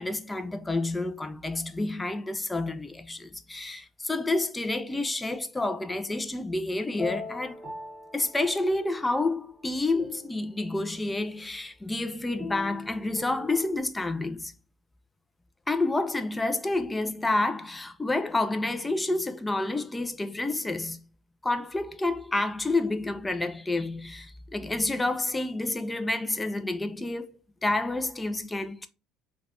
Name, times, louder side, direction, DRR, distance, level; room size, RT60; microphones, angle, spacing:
voice 1, 0.0-7.6 8.1-14.5 15.7-21.0 21.4-27.3 27.6-28.9, left 2 dB, 15° left, 0.4 m, -29 dB
sound 1, 6.9-9.1 9.5-10.7 12.4-13.8, left 3 dB, 20° right, 1.0 m, -41 dB
3.2 x 2.2 x 2.4 m
supercardioid pair, 90°, 0 cm